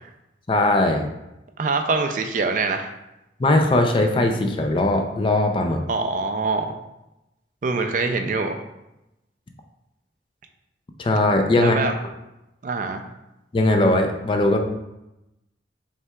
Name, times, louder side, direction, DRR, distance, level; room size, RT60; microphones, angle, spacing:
voice 1, 0.5-1.1 3.4-5.8 11.0-11.8 13.5-14.6, left 2 dB, 30° left, 4 dB, 0.4 m, -19 dB
voice 2, 1.6-2.9 5.9-6.7 7.6-8.6 11.6-11.9 12.6-13.0, right 3 dB, 45° right, 6 dB, 0.3 m, -24 dB
5.6 x 3.3 x 2.3 m, 0.93 s
head